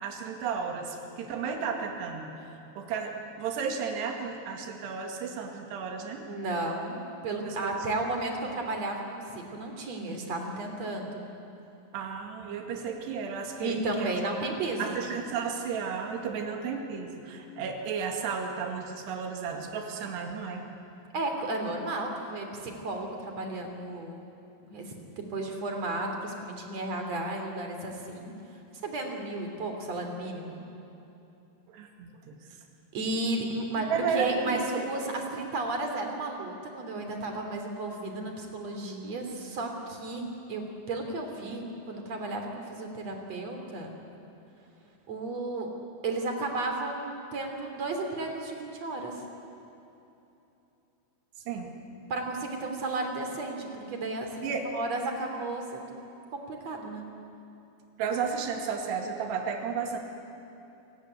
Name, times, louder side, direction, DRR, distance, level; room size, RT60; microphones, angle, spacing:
voice 1, 0.0-2.3 2.8-6.3 7.5-7.7 11.9-14.1 14.8-20.6 31.7-32.3 33.8-34.7 51.5-51.7 54.4-54.7 58.0-60.0, right 6 dB, 70° right, 3 dB, 4.2 m, -33 dB
voice 2, 6.2-7.0 7.2-11.3 13.6-15.0 21.1-24.2 24.6-30.6 32.9-43.9 45.1-45.7 46.0-49.2 52.1-55.9 56.3-57.1, right 2 dB, 40° right, 3 dB, 3.5 m, -33 dB
29.0 x 18.5 x 9.7 m, 2.9 s
omnidirectional pair, 5.3 m